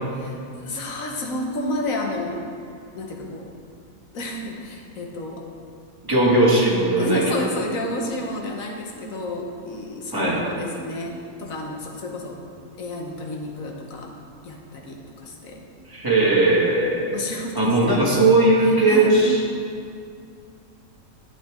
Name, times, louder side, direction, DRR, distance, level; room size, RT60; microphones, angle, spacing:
voice 1, 0.2-2.4 2.9-3.5 4.1-5.4 7.0-12.4 12.8-14.1 14.4-15.6 17.1-18.0 18.6-19.1, left 1 dB, 70° left, 1 dB, 1.5 m, -31 dB
voice 2, 6.0-7.2 10.1-10.4 15.9-17.2 17.6-19.4, right 2 dB, 15° right, -6 dB, 2.1 m, -18 dB
12.0 x 8.6 x 3.7 m, 2.4 s
omnidirectional pair, 1.5 m